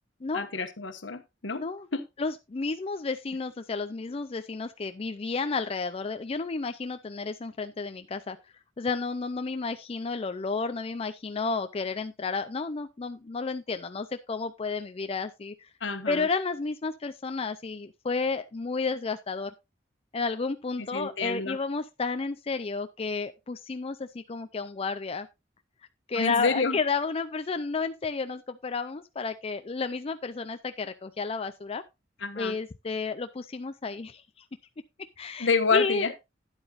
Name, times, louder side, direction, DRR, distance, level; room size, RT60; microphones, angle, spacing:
voice 1, 0.3-1.6 1.9-2.0 15.8-16.3 20.9-21.6 26.1-26.8 32.2-32.5 35.4-36.1, left 4 dB, 75° left, 9 dB, 1.3 m, -28 dB
voice 2, 1.6-1.9 2.2-8.4 8.8-15.7 16.1-19.5 20.1-25.3 26.1-31.8 32.4-34.5 35.2-36.1, left 4 dB, 30° left, 9 dB, 0.4 m, -32 dB
12.0 x 9.8 x 2.5 m, 0.23 s
head